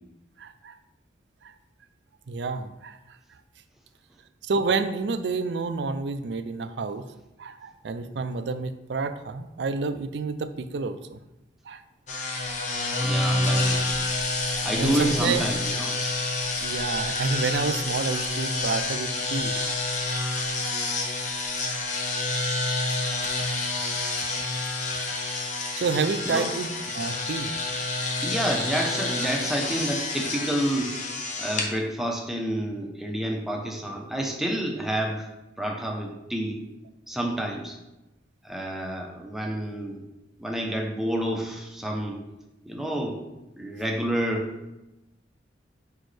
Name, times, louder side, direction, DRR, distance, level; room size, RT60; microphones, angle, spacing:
voice 1, 0.4-0.8 1.4-1.5 2.3-3.0 4.4-7.1 7.4-11.2 11.7-11.8 14.8-15.5 16.6-19.5 25.7-26.7 26.9-27.5, right 4 dB, 75° right, 11 dB, 0.4 m, -29 dB
sound 1, 12.1-31.7, left 2 dB, 40° left, 0.9 m, -28 dB
voice 2, 13.0-13.8 14.6-15.9 26.3-26.5 28.2-31.1 31.4-35.3 35.6-36.6 37.1-37.8 38.4-40.0 40.4-42.2 42.7-43.2 43.6-44.7, right 1 dB, ahead, 0 dB, 0.8 m, -29 dB
6.1 x 5.2 x 3.3 m, 0.97 s
head